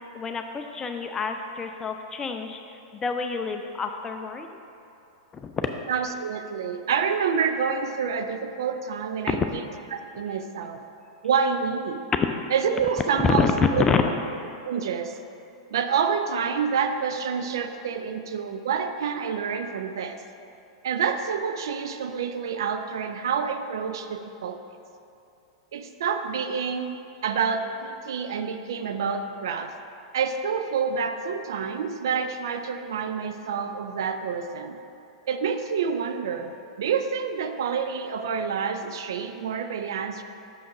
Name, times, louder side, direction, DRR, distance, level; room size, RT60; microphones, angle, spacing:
voice 1, 0.1-2.6 3.0-4.5 5.3-5.7 9.3-9.5 13.2-13.5 13.8-14.0, left 5 dB, 20° left, 5 dB, 0.4 m, -27 dB
voice 2, 5.9-9.6 9.9-10.8 11.2-12.1 12.5-13.9 14.6-15.2 15.7-20.2 20.8-24.6 25.7-26.9 27.2-29.7 30.1-34.8 35.3-40.2, right 6 dB, 60° right, 8 dB, 0.5 m, -28 dB
6.3 x 5.8 x 5.0 m, 2.7 s
figure-of-eight pair, 95°, 2 cm